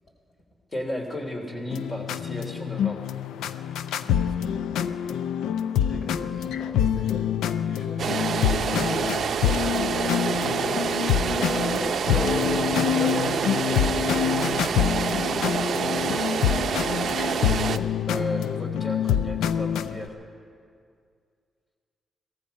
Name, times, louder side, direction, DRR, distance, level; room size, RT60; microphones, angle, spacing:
voice 1, 0.7-3.0 18.1-20.1, left 1 dB, 30° left, 2 dB, 3.2 m, -34 dB
sound 1, 1.7-20.1, left 9 dB, 90° left, 0.4 m, -26 dB
voice 2, 5.8-8.4 11.1-14.0, left 1 dB, 50° left, 0 dB, 4.3 m, -35 dB
sound 2, 8.0-17.8, right 7 dB, 70° right, 0.5 m, -27 dB
17.0 x 14.5 x 5.5 m, 2.2 s
cardioid pair, 60°, 0 cm